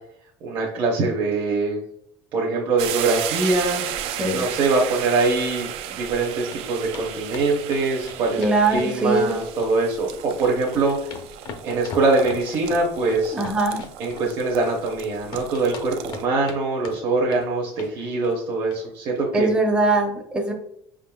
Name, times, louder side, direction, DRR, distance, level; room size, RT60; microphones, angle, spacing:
voice 1, 0.4-1.8 2.3-3.9 4.3-8.4 8.7-11.0 11.6-13.4 14.0-19.5, right 3 dB, 45° right, -2 dB, 0.7 m, -23 dB
sound 1, 2.8-16.2, right 10 dB, 65° right, 0.4 m, -34 dB
sound 2, 5.7-6.2 6.5-6.6 6.9-7.1 7.3-9.3 9.6-10.3 10.5-15.0 15.3-16.6 16.8-17.4 17.7-18.0 18.2-18.4 18.7-18.8 19.1-19.2, left 5 dB, 40° left, 0.5 m, -39 dB
voice 2, 8.4-9.4 13.3-13.9 19.3-20.5, right 2 dB, 10° right, 2 dB, 0.6 m, -21 dB
5.2 x 3.6 x 2.3 m, 0.71 s
cardioid pair, 170°, 11 cm